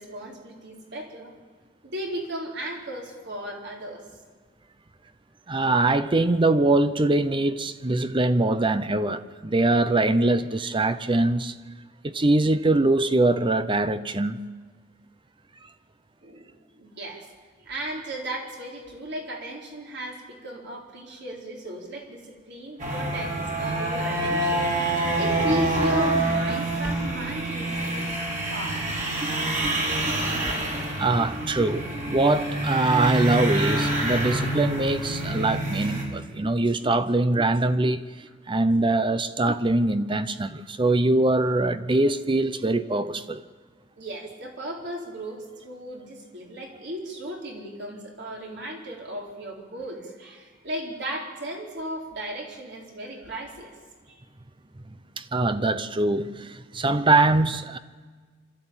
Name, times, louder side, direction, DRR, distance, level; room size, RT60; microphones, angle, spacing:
voice 1, 0.0-1.3 1.8-4.0 16.2-17.3 17.6-28.2 28.5-28.8 44.0-53.8 54.1-54.2, right 1 dB, 60° right, 4.2 m, -35 dB
voice 2, 5.5-11.5 12.0-14.4 29.2-29.8 30.8-43.4 55.2-57.8, right 2 dB, 25° right, 0.7 m, -23 dB
sound 1, 22.8-36.0, right 1 dB, 40° right, 4.1 m, -26 dB
26.5 x 13.0 x 8.9 m
head